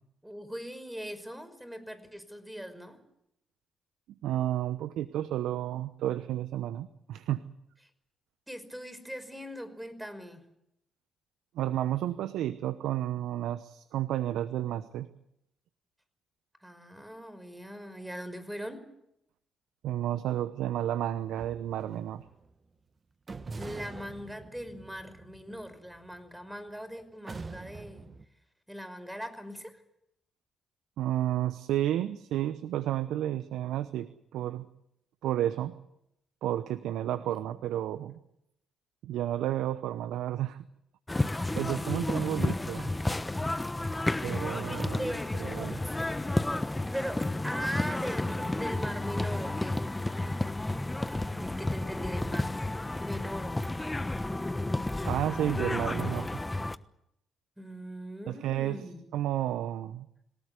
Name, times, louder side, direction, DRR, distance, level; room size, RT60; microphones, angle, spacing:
voice 1, 0.2-3.0 8.5-10.4 16.6-18.8 23.5-28.1 28.7-29.8 37.1-37.8 42.2-43.4 44.0-45.3 45.8-45.9 46.9-49.8 50.1-50.3 51.0-54.4 57.6-59.0, equal, 5° right, 11 dB, 5.4 m, -41 dB
voice 2, 4.2-7.4 11.5-15.1 19.8-22.2 31.0-34.7 35.2-35.7 36.4-38.2 39.0-40.6 41.1-41.3 41.5-42.9 44.2-45.0 45.4-45.8 55.0-56.3 58.3-58.8 59.1-60.1, right 12 dB, 70° right, 14 dB, 0.9 m, -31 dB
sound 1, 21.1-22.5 23.3-26.7 27.3-28.2, right 3 dB, 40° right, 1.6 m, -45 dB
sound 2, 41.1-56.8, left 2 dB, 15° left, 1.2 m, -31 dB
27.0 x 18.0 x 8.3 m, 0.80 s
hypercardioid pair, 45°, 0 cm